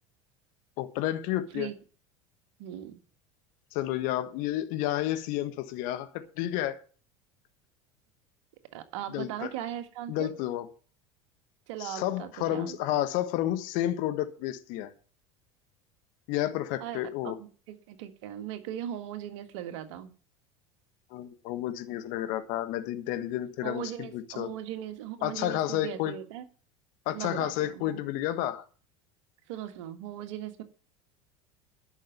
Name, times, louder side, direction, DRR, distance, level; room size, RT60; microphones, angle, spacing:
voice 1, 0.8-1.7 3.7-6.8 9.1-9.5 10.1-10.7 11.8-14.9 16.3-17.4 21.1-24.5 25.2-26.1 27.0-28.6, left 13 dB, 55° left, 1.4 m, -31 dB
voice 2, 2.6-3.0 8.7-10.3 11.7-12.8 16.8-20.1 23.6-26.5 27.1-28.0 29.5-30.6, right 11 dB, 65° right, 1.7 m, -39 dB
11.5 x 6.4 x 8.8 m
figure-of-eight pair, 75°, 16 cm